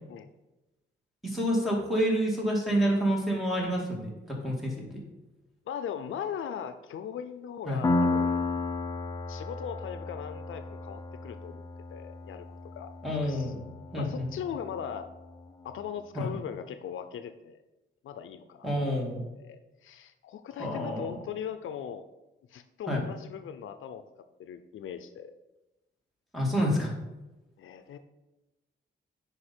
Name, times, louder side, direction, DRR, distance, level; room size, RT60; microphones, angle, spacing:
voice 1, 1.2-5.0 7.7-7.8 13.0-13.6 13.9-14.3 16.1-16.3 18.6-19.2 20.6-21.1 22.9-23.0 26.3-26.9, equal, ahead, -2 dB, 2.3 m, -28 dB
voice 2, 5.7-8.4 9.3-11.6 11.9-12.5 12.7-12.9 13.2-13.6 14.0-15.1 15.6-17.6 18.0-18.7 19.4-22.1 22.5-24.0 24.4-25.3 27.6-28.0, left 8 dB, 85° left, 10 dB, 0.6 m, -39 dB
Piano, 7.8-15.2, left 3 dB, 20° left, 0.8 m, -33 dB
9.7 x 5.0 x 4.4 m, 1.0 s
wide cardioid pair, 130°, 20 cm